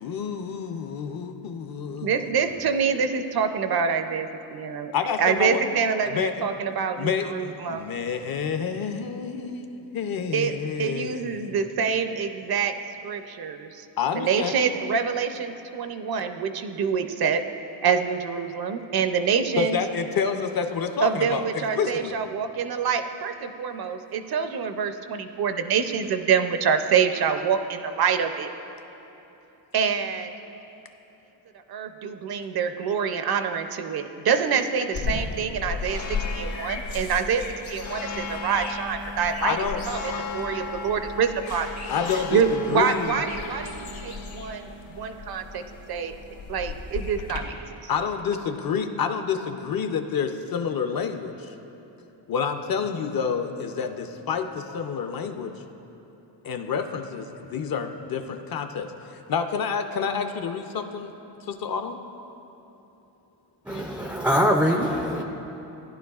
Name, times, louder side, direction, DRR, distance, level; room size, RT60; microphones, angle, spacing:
voice 1, 0.0-2.3 4.9-5.7 6.0-6.5 7.0-11.5 14.0-14.5 19.6-22.2 39.4-39.8 40.1-40.2 41.9-43.1 47.9-51.5 52.3-55.5 56.4-58.9 59.3-61.1 61.5-62.0, left 6 dB, 50° left, 6 dB, 0.6 m, -28 dB
voice 2, 2.0-4.9 5.2-7.9 10.3-10.5 10.8-12.7 13.0-13.7 14.1-17.4 17.8-19.8 21.0-28.5 29.7-30.3 31.7-36.0 36.3-39.6 39.9-41.9 42.3-44.7 45.0-45.6 45.9-46.1 46.5-47.5, right 6 dB, 55° right, 8 dB, 0.5 m, -26 dB
sound 1, 34.9-47.4, left 4 dB, 85° left, 1.9 m, -34 dB
voice 3, 63.7-65.2, equal, 5° right, 1 dB, 0.3 m, -23 dB
15.0 x 10.5 x 2.3 m, 3.0 s
wide cardioid pair, 140°, 46 cm